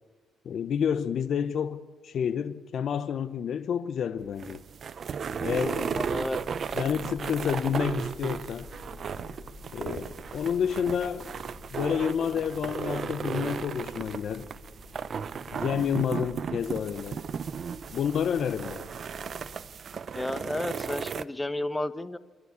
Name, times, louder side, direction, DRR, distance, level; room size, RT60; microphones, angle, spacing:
voice 1, 0.4-4.6 5.4-6.0 6.7-8.7 9.7-11.3 11.7-14.5 15.5-17.2 17.9-18.8, left 8 dB, 60° left, 0.8 m, -29 dB
sound 1, 4.2-21.2, right 6 dB, 50° right, 0.7 m, -35 dB
sound 2, 5.2-19.6, left 4 dB, 40° left, 5.6 m, -50 dB
voice 2, 5.6-6.4 20.1-22.2, left 1 dB, 15° left, 1.1 m, -32 dB
27.5 x 12.5 x 8.4 m
cardioid pair, 90°, 0 cm